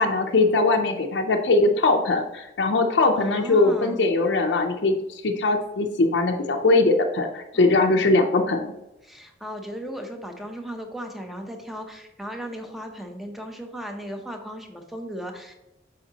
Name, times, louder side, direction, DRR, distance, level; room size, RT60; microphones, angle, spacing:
voice 1, 0.0-8.6, left 3 dB, 70° left, 3 dB, 0.5 m, -21 dB
voice 2, 3.1-4.0 7.5-8.1 9.0-15.5, equal, ahead, 3 dB, 0.7 m, -36 dB
7.0 x 4.8 x 2.8 m, 0.92 s
head